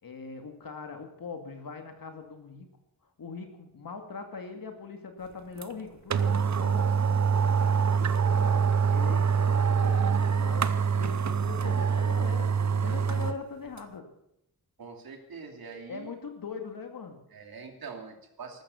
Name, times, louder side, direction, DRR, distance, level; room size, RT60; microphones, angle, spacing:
voice 1, 0.0-2.7 3.2-7.5 8.0-14.1 15.9-17.2, left 5 dB, 70° left, 5 dB, 2.3 m, -41 dB
sound 1, 5.6-5.7 6.1-13.4 13.8-13.9, right 6 dB, 50° right, 0.8 m, -25 dB
voice 2, 14.8-16.1 17.3-18.6, right 5 dB, 75° right, 3 dB, 2.8 m, -43 dB
14.5 x 13.0 x 7.1 m, 0.79 s
wide cardioid pair, 145°, 36 cm